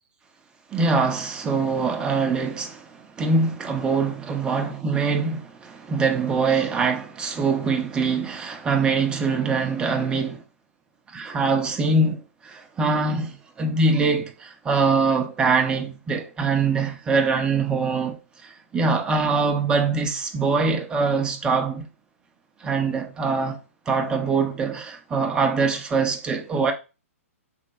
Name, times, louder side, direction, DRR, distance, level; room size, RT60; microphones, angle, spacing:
voice 1, 0.7-10.4 11.1-21.8 22.6-23.6 23.9-26.7, right 4 dB, 10° right, 0.4 m, -23 dB
3.1 x 2.8 x 2.5 m
figure-of-eight pair, 115°, 8 cm